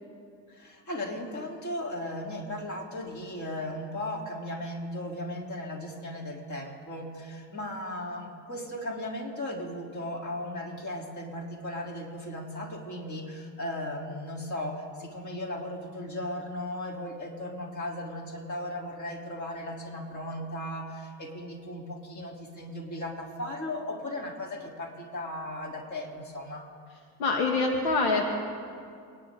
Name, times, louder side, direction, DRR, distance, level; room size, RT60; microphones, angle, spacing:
voice 1, 0.5-26.7, left 1 dB, 35° left, -1 dB, 3.5 m, -36 dB
voice 2, 27.2-28.3, left 3 dB, 75° left, 1 dB, 2.4 m, -25 dB
29.0 x 10.0 x 3.8 m, 2.3 s
hypercardioid pair, 85°, 50 cm